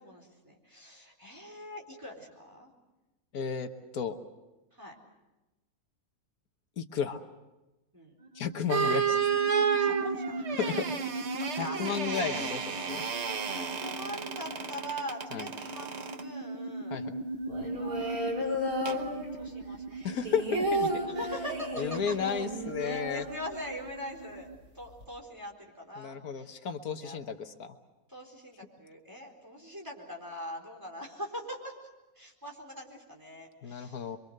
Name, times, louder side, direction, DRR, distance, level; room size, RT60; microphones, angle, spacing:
voice 1, 0.0-2.7 4.7-4.9 7.9-8.1 9.8-10.9 11.2-12.9 13.2-17.1 17.7-18.3 19.1-20.0 20.5-22.1 22.8-24.5 24.7-26.7 27.0-27.2 28.1-31.7 32.2-34.1, equal, 15° right, 0 dB, 4.3 m, -43 dB
voice 2, 3.3-4.2 6.8-7.2 8.3-9.2 10.6-11.3 11.6-13.0 15.3-15.5 16.9-17.2 20.0-20.9 21.8-23.2 26.0-27.7 33.6-34.2, left 6 dB, 85° left, 7 dB, 1.6 m, -33 dB
sound 1, 8.2-24.6, right 2 dB, 35° right, 1.4 m, -40 dB
sound 2, 8.7-16.3 18.9-19.1, right 6 dB, 50° right, 1.3 m, -31 dB
sound 3, 17.5-19.6 19.9-23.9 24.2-24.3 24.5-25.0, equal, 85° right, 4.3 m, -34 dB
27.0 x 23.5 x 6.6 m, 1.0 s
omnidirectional pair, 1.5 m